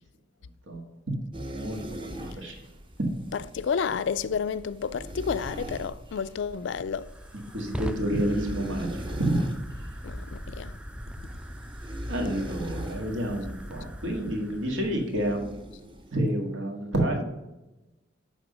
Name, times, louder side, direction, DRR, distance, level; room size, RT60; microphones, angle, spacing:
sound 1, 1.3-16.2, right 1 dB, 25° right, 0.7 m, -41 dB
voice 1, 1.5-2.1 2.4-2.5 7.5-8.9 9.2-9.4 12.1-15.7 16.1-17.2, right 1 dB, 85° right, 1.9 m, -29 dB
voice 2, 3.3-7.1 10.0-10.7, left 6 dB, 65° left, 0.4 m, -30 dB
Fire, 6.2-15.1, equal, 5° right, 0.3 m, -40 dB
11.0 x 3.7 x 5.1 m
head